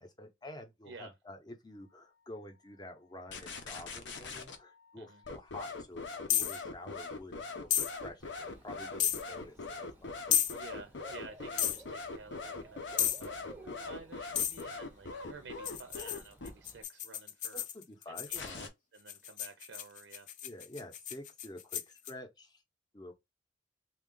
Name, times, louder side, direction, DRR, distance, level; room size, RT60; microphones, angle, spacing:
voice 1, 0.0-10.2 17.5-18.7 20.4-22.6 22.9-23.1, left 1 dB, 25° left, 0.7 m, -49 dB
sound 1, 3.3-4.6 5.2-16.5 18.3-18.7, left 3 dB, 70° left, 0.8 m, -42 dB
sound 2, 6.3-6.6 7.7-7.9 9.0-9.2 10.3-10.5 11.6-11.8 13.0-13.3 14.3-14.6 15.6-18.5 19.1-22.1, left 10 dB, 45° left, 0.4 m, -32 dB
Bird / Cricket, 8.2-16.8, right 1 dB, 10° right, 0.6 m, -56 dB
voice 2, 10.5-17.6 18.1-20.3, right 4 dB, 70° right, 0.5 m, -52 dB
3.5 x 2.4 x 3.8 m
head